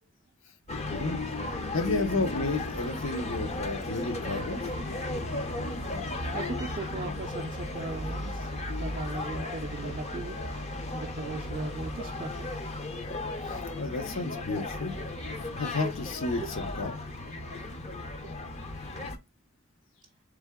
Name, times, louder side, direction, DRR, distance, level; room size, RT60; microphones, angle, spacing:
sound 1, 0.7-19.2, left 2 dB, 35° left, 0.6 m, -35 dB
voice 1, 0.9-1.2 1.7-4.6 13.5-14.9 15.6-17.0, left 3 dB, 70° left, 0.8 m, -32 dB
voice 2, 6.3-10.4 10.9-12.5 16.4-16.5, right 3 dB, 40° right, 0.4 m, -38 dB
3.7 x 3.4 x 3.5 m
head